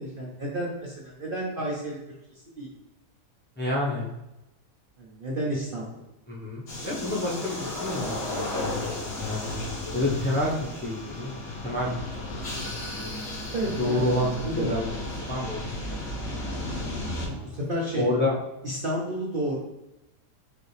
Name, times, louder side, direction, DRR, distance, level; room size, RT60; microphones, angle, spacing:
voice 1, 0.0-2.0 2.3-2.7 5.0-5.9 13.5-14.1 14.4-14.8 17.2-18.0 18.6-19.6, right 1 dB, 50° right, -4 dB, 0.7 m, -31 dB
voice 2, 3.6-4.1 6.3-9.5 9.9-12.7 13.8-14.3 14.5-14.9 15.3-16.0 17.1-17.6 17.9-18.3, left 1 dB, 15° left, -5 dB, 0.4 m, -29 dB
sound 1, 6.7-17.3, left 2 dB, 45° left, 1.3 m, -34 dB
4.9 x 2.7 x 3.2 m, 0.95 s
omnidirectional pair, 1.7 m